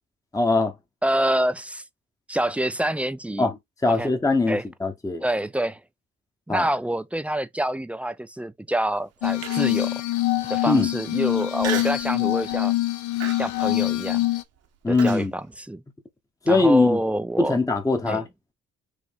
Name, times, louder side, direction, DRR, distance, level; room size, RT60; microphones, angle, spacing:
voice 1, 0.3-0.7 3.4-3.5 3.8-5.2 6.5-6.7 10.7-10.9 14.8-15.3 16.4-17.0 17.4-18.2, left 3 dB, 10° left, 0.8 m, -21 dB
voice 2, 1.0-1.8 2.3-3.5 3.8-4.1 4.5-4.7 5.2-5.8 6.5-10.0 10.5-12.7 13.4-14.2 14.9-15.8 16.5-17.6 18.1-18.2, right 1 dB, 5° right, 0.3 m, -26 dB
Glass, 9.2-14.4, left 17 dB, 75° left, 0.7 m, -24 dB
Human voice, 9.4-9.9 10.4-10.5 11.6-12.1 12.5-12.8 13.2-15.3, right 8 dB, 55° right, 0.9 m, -34 dB
4.9 x 2.6 x 3.5 m
cardioid pair, 90°, 30 cm